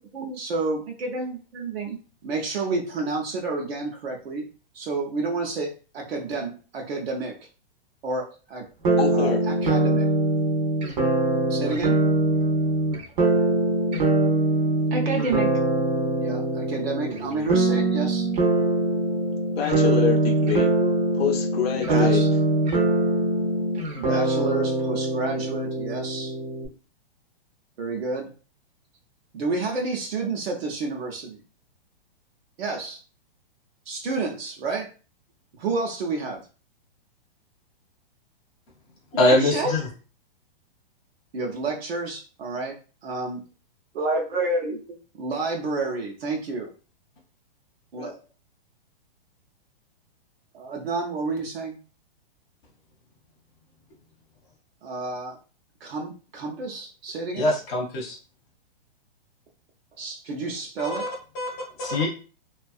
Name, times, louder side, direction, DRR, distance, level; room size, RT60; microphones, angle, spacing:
voice 1, 0.1-4.5 4.7-7.5 8.0-8.7 9.1-10.1 11.5-12.0 14.9-15.5 16.2-18.3 21.8-22.3 24.0-26.3 27.8-28.3 29.3-31.4 32.6-33.0 33.9-34.9 35.6-36.4 39.1-39.8 41.3-43.4 43.9-46.7 47.9-48.1 50.5-51.8 54.8-55.4 55.8-57.5 60.0-61.1 61.4-61.5, right 3 dB, 80° right, 0.8 m, -30 dB
sound 1, 8.8-26.7, right 2 dB, 45° right, 0.6 m, -23 dB
voice 2, 9.0-9.4 19.6-20.7 21.1-22.2 48.0-48.2, left 9 dB, 85° left, 0.6 m, -26 dB
voice 3, 39.2-39.9 57.3-58.1 60.8-61.1 61.4-61.5 61.8-62.1, left 2 dB, 10° left, 0.3 m, -22 dB
2.6 x 2.4 x 2.3 m
hypercardioid pair, 155°, 30 cm